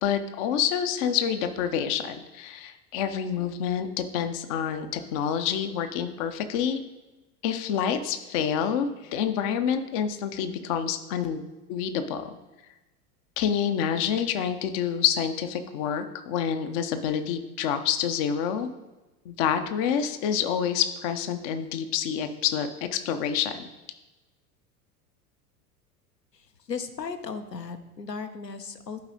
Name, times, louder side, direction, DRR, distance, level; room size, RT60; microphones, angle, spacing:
voice 1, 0.0-6.8 7.4-11.4 11.7-12.3 13.4-18.7 19.3-23.6, left 8 dB, 25° left, 9 dB, 0.4 m, -27 dB
voice 2, 26.3-29.0, left 5 dB, 85° left, 8 dB, 0.8 m, -36 dB
11.5 x 4.7 x 3.8 m, 1.1 s
figure-of-eight pair, 85°, 48 cm